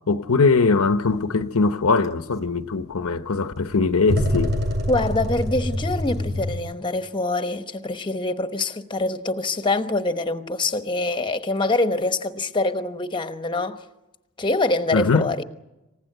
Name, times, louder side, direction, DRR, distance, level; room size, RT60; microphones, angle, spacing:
voice 1, 0.1-4.6 14.9-15.3, left 4 dB, 70° left, 0.8 m, -21 dB
sound 1, 2.0-2.1 4.1-6.6, left 1 dB, 50° right, 6.6 m, -25 dB
voice 2, 4.9-13.8 14.4-15.4, left 2 dB, 20° left, 1.0 m, -25 dB
27.0 x 16.0 x 9.1 m
head